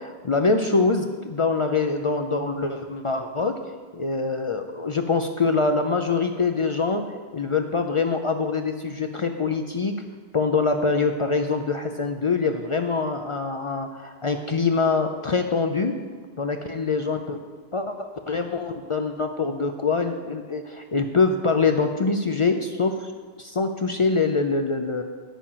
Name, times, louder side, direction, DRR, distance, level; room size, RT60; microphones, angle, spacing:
voice 1, 0.0-3.6 3.9-7.0 7.3-9.9 10.3-15.9 16.4-17.4 17.7-23.1 23.4-25.0, left 4 dB, 45° left, 6 dB, 0.4 m, -24 dB
8.6 x 7.1 x 5.6 m, 1.5 s
omnidirectional pair, 1.0 m